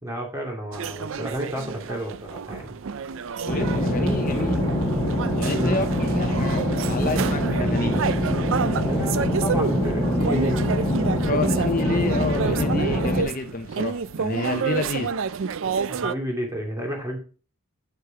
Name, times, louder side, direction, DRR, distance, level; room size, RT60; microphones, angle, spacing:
voice 1, 0.0-2.8 5.5-5.8 8.8-10.8 14.7-14.8 15.9-17.2, equal, 15° right, 0 dB, 2.4 m, -31 dB
sound 1, 0.7-16.1, right 6 dB, 60° right, 0.4 m, -30 dB
voice 2, 3.4-4.6 5.4-8.1 11.2-15.1, left 3 dB, 40° left, 7 dB, 0.7 m, -29 dB
sound 2, 3.5-13.2, left 1 dB, 5° left, 2.9 m, -24 dB
7.5 x 6.5 x 4.8 m, 0.37 s
head